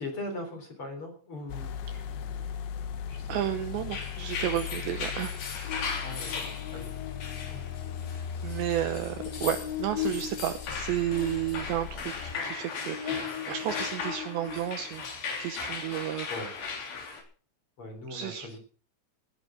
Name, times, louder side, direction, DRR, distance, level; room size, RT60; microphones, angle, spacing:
voice 1, 0.0-2.4 3.1-3.6 6.0-6.9 7.5-7.7 16.3-16.6 17.8-18.6, left 2 dB, 30° left, 4 dB, 4.1 m, -41 dB
sound 1, 1.5-12.4, left 8 dB, 70° left, 3.0 m, -38 dB
voice 2, 3.3-5.4 8.4-15.1 15.4-16.3 18.1-18.5, right 12 dB, 75° right, 9 dB, 2.8 m, -32 dB
sound 2, 3.8-17.2, left 5 dB, 50° left, 5.0 m, -38 dB
Buzz, 5.7-15.1, left 9 dB, 90° left, 5.9 m, -40 dB
19.0 x 9.8 x 6.0 m, 0.42 s
omnidirectional pair, 5.9 m